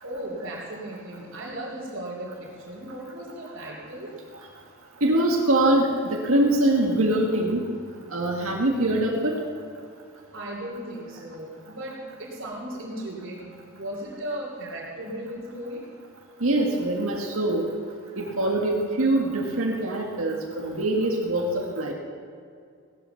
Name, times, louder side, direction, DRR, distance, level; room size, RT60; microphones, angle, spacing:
voice 1, 0.0-4.1 10.3-15.8, right 1 dB, 65° right, -7 dB, 3.1 m, -36 dB
voice 2, 5.0-7.7 8.1-9.4 16.4-17.6 18.2-21.9, right 1 dB, 85° right, -1 dB, 1.8 m, -23 dB
17.5 x 11.0 x 7.0 m, 2.3 s
head